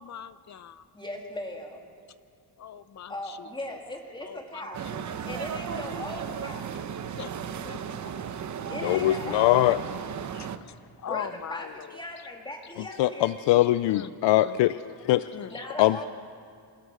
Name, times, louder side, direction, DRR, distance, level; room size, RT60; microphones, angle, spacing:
voice 1, 0.0-0.8 2.6-3.1 4.2-4.6 4.9-5.0 7.1-7.3 7.6-7.8 10.3-10.5 11.0-11.7 13.9-14.1 14.4-14.6 14.8-15.0 15.3-15.5, left 9 dB, 40° left, 14 dB, 0.8 m, -39 dB
voice 2, 0.9-1.8 3.1-4.8 5.3-6.7 8.7-9.8 11.0-13.3 15.3-16.0, left 1 dB, 10° left, 1 dB, 2.8 m, -38 dB
sound 1, 4.7-10.6, right 8 dB, 45° right, 0.9 m, -35 dB
voice 3, 8.8-9.8 13.0-14.8 15.0-15.3 15.8-16.0, left 15 dB, 85° left, 15 dB, 0.5 m, -22 dB
26.5 x 16.0 x 6.3 m, 2.3 s
cardioid pair, 140°, 41 cm